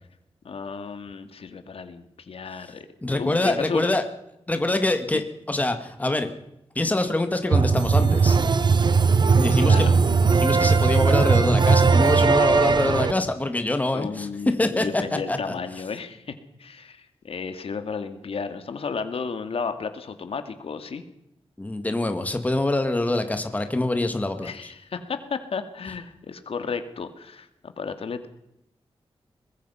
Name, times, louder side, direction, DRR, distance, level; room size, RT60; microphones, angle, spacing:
voice 1, 0.4-3.9 5.1-5.2 9.4-9.9 13.9-16.3 16.6-21.0 24.4-28.3, left 5 dB, 70° left, 9 dB, 2.1 m, -33 dB
voice 2, 3.0-4.0 4.5-6.3 6.8-8.4 9.3-9.9 10.3-14.3 14.6-15.0 15.3-15.5 21.6-24.7, left 2 dB, 15° left, 7 dB, 1.8 m, -25 dB
sound 1, 7.5-13.1, right 5 dB, 45° right, 1.0 m, -18 dB
23.0 x 21.0 x 5.7 m, 0.83 s
wide cardioid pair, 155°, 10 cm